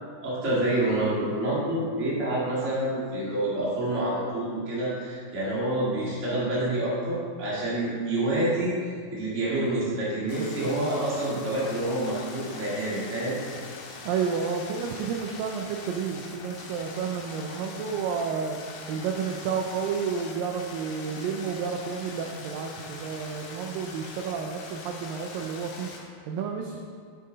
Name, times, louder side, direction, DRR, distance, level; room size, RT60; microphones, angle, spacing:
voice 1, 0.2-8.8 9.1-13.4, right 1 dB, 25° right, -8 dB, 1.9 m, -27 dB
sound 1, 10.3-26.0, left 4 dB, 75° left, 2.7 m, -42 dB
voice 2, 14.0-26.8, right 6 dB, 80° right, 2 dB, 2.1 m, -31 dB
9.1 x 6.6 x 4.0 m, 2.1 s
omnidirectional pair, 4.4 m